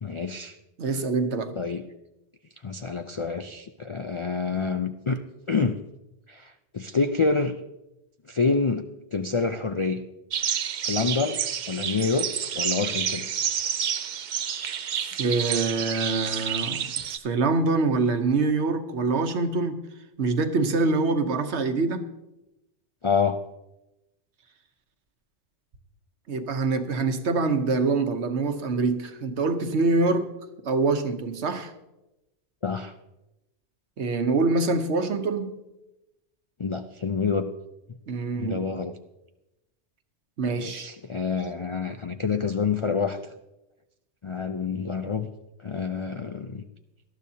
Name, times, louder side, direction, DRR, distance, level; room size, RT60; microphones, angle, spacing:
voice 1, 0.0-0.6 0.9-1.0 1.6-1.8 2.6-5.2 5.5-5.8 6.3-7.6 8.3-8.8 9.1-10.0 10.8-11.4 11.7-13.3 23.0-23.4 32.6-32.9 36.6-37.5 38.4-39.0 40.5-43.2 44.2-45.3 45.6-46.6, left 4 dB, 50° left, 0.3 m, -27 dB
voice 2, 0.8-1.6 15.0-16.9 17.2-19.8 20.2-22.1 26.3-30.3 30.6-31.7 34.0-35.5 38.1-38.6 40.4-40.9, right 3 dB, 70° right, 1.2 m, -25 dB
sound 1, 10.3-17.2, right 8 dB, 55° right, 0.5 m, -29 dB
19.0 x 12.5 x 2.8 m
omnidirectional pair, 1.2 m